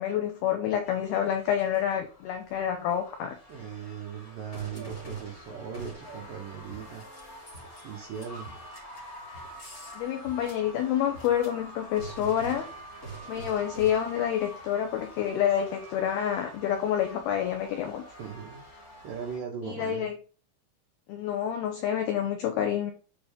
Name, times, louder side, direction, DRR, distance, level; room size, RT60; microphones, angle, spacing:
voice 1, 0.0-3.4 10.0-12.7 13.3-18.0 19.7-20.2 21.1-22.9, left 10 dB, 90° left, 5 dB, 2.2 m, -28 dB
sound 1, 0.8-19.4, right 1 dB, 20° left, 2.8 m, -45 dB
voice 2, 3.5-7.1 7.8-8.5 18.2-20.1, right 7 dB, 70° right, 0 dB, 2.1 m, -39 dB
9.4 x 4.4 x 5.2 m, 0.37 s
omnidirectional pair, 5.7 m